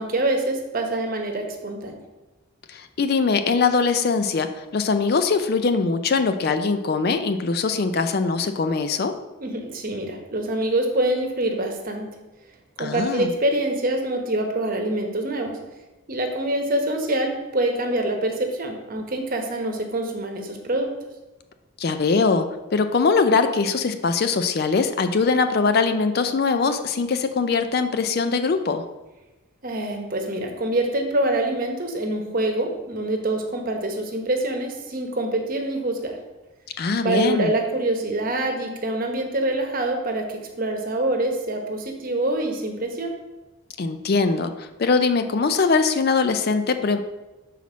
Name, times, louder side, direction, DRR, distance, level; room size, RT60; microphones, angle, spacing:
voice 1, 0.0-1.9 9.4-12.1 12.8-15.5 16.1-20.9 29.6-36.2 37.0-43.1, right 1 dB, 40° right, 3 dB, 0.9 m, -25 dB
voice 2, 2.7-9.2 12.8-13.3 21.8-28.8 36.8-37.5 43.8-47.0, left 4 dB, 45° left, 9 dB, 0.4 m, -22 dB
5.8 x 4.2 x 6.1 m, 1.1 s
head